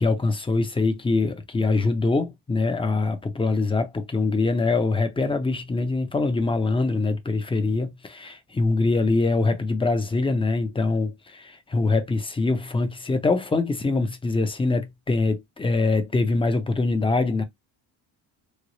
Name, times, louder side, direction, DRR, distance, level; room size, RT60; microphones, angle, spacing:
voice 1, 0.0-17.4, left 3 dB, 15° left, 0.5 m, -24 dB
3.2 x 2.0 x 3.9 m
cardioid pair, 110°, 42 cm